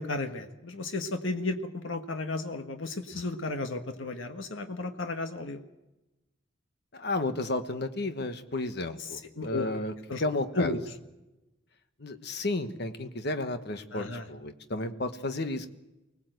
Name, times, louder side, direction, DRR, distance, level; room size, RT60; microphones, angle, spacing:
voice 1, 0.0-5.6 9.4-9.7 10.1-10.2 10.6-10.8 13.9-14.3, left 2 dB, 80° left, 6 dB, 1.4 m, -33 dB
voice 2, 6.9-9.9 10.2-10.7 12.0-15.7, left 2 dB, 55° left, 8 dB, 1.3 m, -32 dB
24.5 x 18.5 x 8.0 m, 1.0 s
head